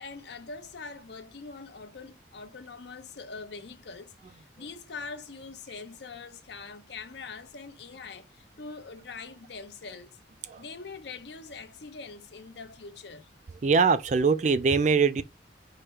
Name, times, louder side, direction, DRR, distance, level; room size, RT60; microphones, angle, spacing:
voice 1, 0.0-10.2 10.5-13.3, left 4 dB, 60° left, 0.7 m, -43 dB
voice 2, 13.6-15.2, right 5 dB, 40° right, 0.3 m, -22 dB
4.9 x 2.1 x 4.5 m
head